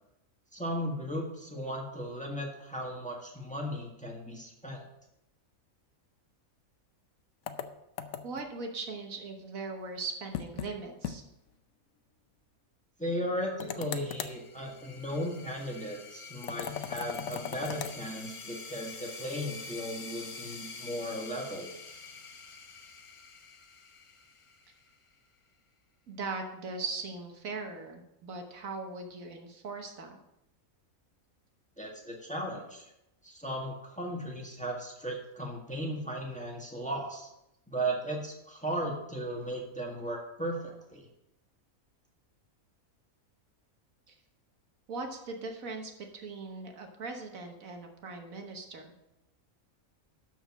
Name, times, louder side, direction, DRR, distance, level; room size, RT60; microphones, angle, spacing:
voice 1, 0.5-4.8 13.0-21.7 31.8-32.8 33.2-37.3 37.7-41.1, equal, 5° left, -1 dB, 1.6 m, -36 dB
sound 1, 7.5-8.5 10.3-10.7 11.0-11.2 11.5-11.6 13.6-14.4 16.4-18.0, left 8 dB, 75° left, 1.1 m, -38 dB
voice 2, 8.2-11.2 26.1-30.2 44.1-44.2 44.9-48.9, right 3 dB, 70° right, 4 dB, 1.5 m, -39 dB
sound 2, 13.9-25.2, left 4 dB, 40° left, 0.4 m, -47 dB
12.5 x 4.5 x 6.1 m, 0.87 s
omnidirectional pair, 1.5 m